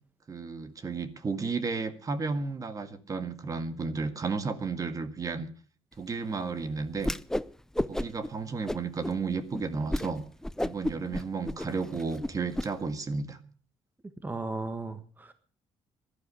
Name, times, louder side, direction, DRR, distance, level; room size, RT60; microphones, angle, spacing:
voice 1, 0.3-5.5 6.0-7.1 7.9-10.2 10.6-13.4, right 4 dB, 35° right, 10 dB, 1.8 m, -33 dB
Whoosh swoosh swish, 7.0-7.5 7.7-8.3 8.7-9.1 9.5-9.6 9.9-10.1 10.4-12.7, left 1 dB, 5° left, 0.6 m, -31 dB
voice 2, 14.2-15.3, right 3 dB, 20° right, 9 dB, 1.5 m, -35 dB
16.0 x 12.0 x 6.4 m, 0.42 s
cardioid pair, 90°, 10 cm